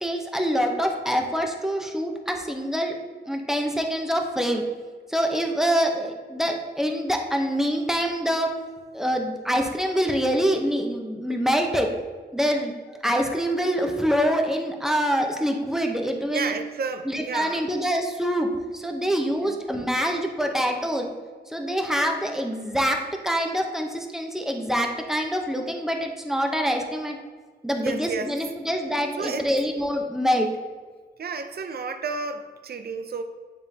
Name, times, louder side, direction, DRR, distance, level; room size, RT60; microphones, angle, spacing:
voice 1, 0.0-3.0 3.3-4.7 5.1-8.5 8.9-11.9 12.3-12.7 13.0-16.5 17.1-21.1 21.5-27.2 27.6-30.5, equal, ahead, 2 dB, 0.7 m, -25 dB
voice 2, 16.3-17.6 19.4-19.6 27.8-28.3 29.1-29.5 31.2-33.2, right 4 dB, 60° right, 7 dB, 0.5 m, -31 dB
9.1 x 3.7 x 2.8 m, 1.5 s
wide cardioid pair, 95°, 18 cm